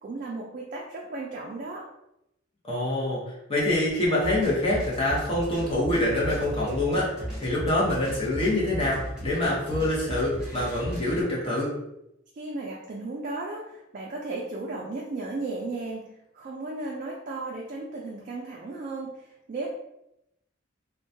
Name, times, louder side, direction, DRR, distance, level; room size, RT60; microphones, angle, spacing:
voice 1, 0.0-1.8 12.4-16.0 16.3-19.7, right 2 dB, 45° right, -2 dB, 0.3 m, -35 dB
voice 2, 2.7-11.7, left 1 dB, 30° left, -5 dB, 0.6 m, -26 dB
sound 1, 4.2-11.2, equal, 5° right, 0.7 m, -36 dB
2.2 x 2.1 x 2.6 m, 0.84 s
head